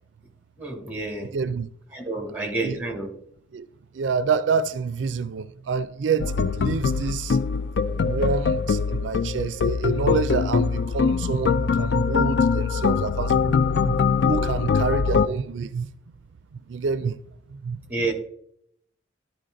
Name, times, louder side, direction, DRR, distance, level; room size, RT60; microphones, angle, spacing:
voice 1, 0.6-1.3 1.9-3.1 17.9-18.1, right 2 dB, 10° right, 1.9 m, -29 dB
voice 2, 1.3-1.7 2.4-2.8 3.5-3.7 3.9-7.4 8.0-15.9 16.5-17.2 17.5-17.8, right 5 dB, 80° right, 0.4 m, -28 dB
sound 1, 6.2-15.3, left 5 dB, 65° left, 0.4 m, -23 dB
12.0 x 4.6 x 3.8 m
head